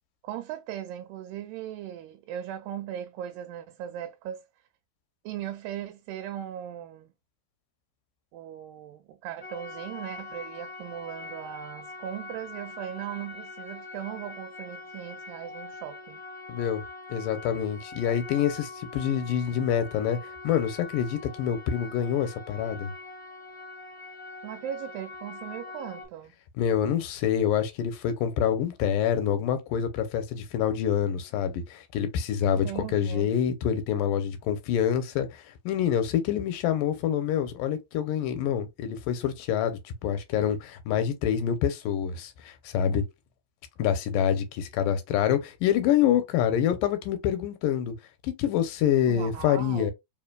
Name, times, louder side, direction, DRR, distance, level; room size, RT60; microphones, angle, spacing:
voice 1, 0.2-4.5 5.2-7.1 8.3-16.2 24.4-26.3 32.4-33.3 49.1-49.9, right 11 dB, 90° right, 2.3 m, -38 dB
sound 1, 9.4-26.1, left 3 dB, 20° left, 0.5 m, -43 dB
voice 2, 16.5-16.8 17.1-20.2 20.4-22.9 26.6-43.0 43.8-48.0 48.2-49.9, left 9 dB, 85° left, 2.3 m, -26 dB
5.0 x 2.8 x 2.2 m
omnidirectional pair, 3.9 m